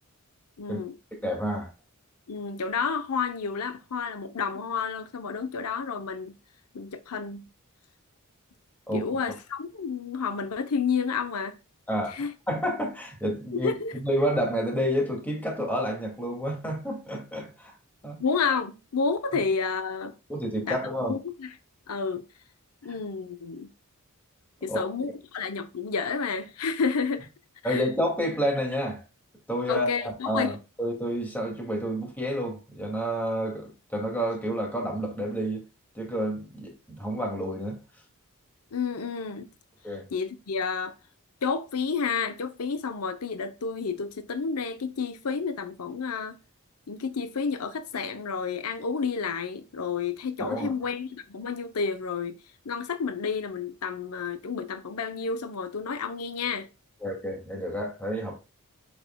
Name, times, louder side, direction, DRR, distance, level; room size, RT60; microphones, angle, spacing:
voice 1, 0.6-0.9 2.3-6.4 6.7-7.5 8.9-11.6 12.1-12.3 13.6-14.0 18.2-20.1 20.7-20.8 21.1-21.5 21.9-22.2 22.8-23.7 24.6-27.3 27.6-27.8 29.7-30.5 38.7-39.5 40.1-40.9 41.4-46.4 46.9-52.4 52.7-56.7, left 5 dB, 80° left, 0.7 m, -30 dB
voice 2, 1.1-1.7 8.9-9.2 11.9-12.1 12.5-13.7 14.0-17.7 18.0-18.2 20.3-21.1 24.7-24.8 27.6-29.0 29.5-35.6 35.9-37.8 39.8-40.0 50.4-50.7 57.0-58.4, equal, 10° left, 2.2 m, -29 dB
8.0 x 6.4 x 2.2 m
head